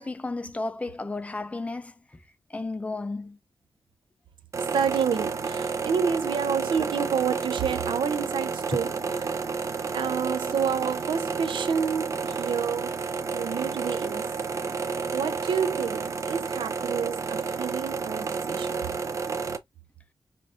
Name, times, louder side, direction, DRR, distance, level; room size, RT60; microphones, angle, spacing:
voice 1, 0.0-1.9 2.5-3.4 8.7-8.8, left 2 dB, 15° left, 0.4 m, -33 dB
sound 1, 4.5-19.6, right 5 dB, 40° right, 0.5 m, -31 dB
voice 2, 4.7-9.0 9.2-9.4 9.9-12.9 13.3-14.3 15.1-18.9, right 7 dB, 80° right, 0.6 m, -29 dB
5.2 x 2.5 x 2.5 m
wide cardioid pair, 180°, 8 cm